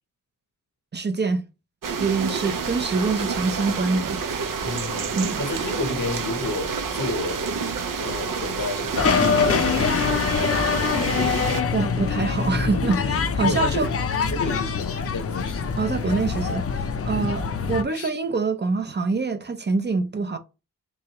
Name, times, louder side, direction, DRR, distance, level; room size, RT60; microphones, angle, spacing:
voice 1, 0.9-1.4 2.0-4.2 5.1-5.4 11.7-13.9 15.8-20.4, right 4 dB, 35° right, 0.5 m, -25 dB
sound 1, 1.8-11.6, right 5 dB, 75° right, 0.6 m, -28 dB
voice 2, 4.6-5.1 5.4-7.5 8.0-10.2 13.4-14.0 14.3-15.7 17.0-17.3 17.9-18.1, left 3 dB, 70° left, 0.9 m, -31 dB
sound 2, 8.9-17.8, left 5 dB, 45° left, 0.5 m, -24 dB
3.5 x 3.1 x 2.9 m
wide cardioid pair, 100°, 32 cm